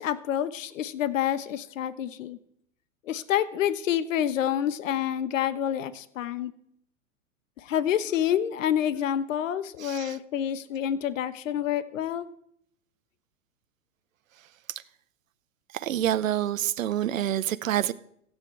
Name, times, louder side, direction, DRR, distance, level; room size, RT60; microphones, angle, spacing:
voice 1, 0.0-2.4 3.1-6.5 7.6-12.3, left 10 dB, 70° left, 1.2 m, -28 dB
voice 2, 9.8-10.2 14.7-14.8 15.7-17.9, right 11 dB, 80° right, 0.8 m, -27 dB
16.0 x 8.3 x 8.0 m
hypercardioid pair, 105°, 39 cm